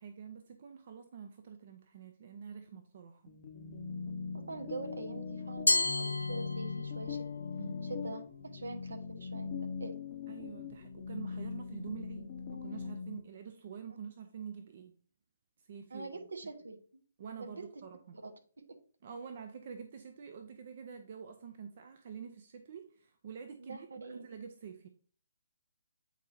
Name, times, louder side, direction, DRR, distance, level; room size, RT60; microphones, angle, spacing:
voice 1, 0.0-3.3 7.6-7.9 10.3-15.0 15.6-16.1 17.2-18.2 19.0-24.9, right 7 dB, 45° right, 6 dB, 0.7 m, -47 dB
sound 1, 3.3-13.2, left 5 dB, 35° left, 0.8 m, -40 dB
voice 2, 4.3-7.3 7.9-9.5 9.8-10.0 15.9-16.8 17.4-17.6 18.2-18.8 23.6-24.2, right 3 dB, 65° right, 5 dB, 1.2 m, -44 dB
Glass, 5.7-7.1, left 1 dB, 85° left, 0.4 m, -31 dB
8.3 x 4.5 x 2.7 m, 0.43 s
figure-of-eight pair, 135°, 0 cm